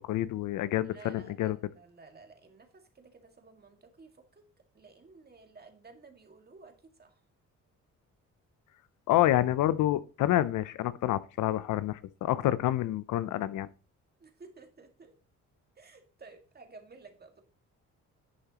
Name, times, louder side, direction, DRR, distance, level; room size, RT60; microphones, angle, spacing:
voice 1, 0.1-1.6 9.1-13.7, left 14 dB, 80° left, 0.7 m, -28 dB
voice 2, 0.8-4.4 4.7-7.2 14.2-15.1 15.8-17.4, right 4 dB, 30° right, 2.0 m, -54 dB
11.0 x 6.7 x 3.0 m
cardioid pair, 90°, 30 cm